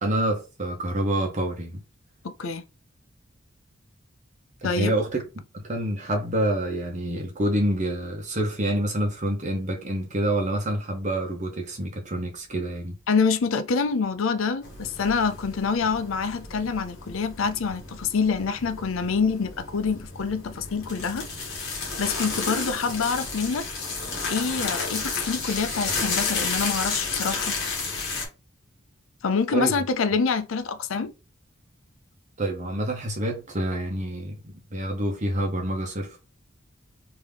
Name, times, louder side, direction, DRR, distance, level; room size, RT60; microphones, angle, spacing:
voice 1, 0.0-1.8 4.6-5.2 5.6-13.0 29.5-29.8 32.4-36.2, right 1 dB, 35° right, 0.9 m, -27 dB
voice 2, 2.2-2.6 4.6-5.0 13.1-21.3 22.0-23.7 24.3-27.6 29.2-31.1, left 5 dB, 85° left, 0.5 m, -26 dB
sound 1, 14.6-28.2, left 4 dB, 55° left, 1.4 m, -32 dB
3.5 x 2.8 x 3.4 m
head